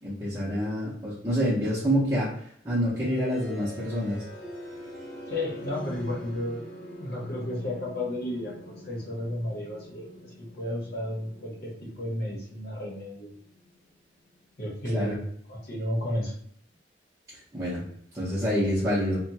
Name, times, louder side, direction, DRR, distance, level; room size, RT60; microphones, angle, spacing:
voice 1, 0.0-2.3 2.6-4.2 14.8-15.2 17.5-17.8 18.1-19.2, equal, 20° right, -12 dB, 0.8 m, -27 dB
sound 1, 3.0-14.8, equal, 30° left, 1.1 m, -44 dB
voice 2, 5.3-6.6 7.0-13.3 14.6-15.2 15.5-16.3, left 1 dB, 55° left, -3 dB, 1.0 m, -33 dB
2.8 x 2.2 x 2.8 m, 0.65 s
head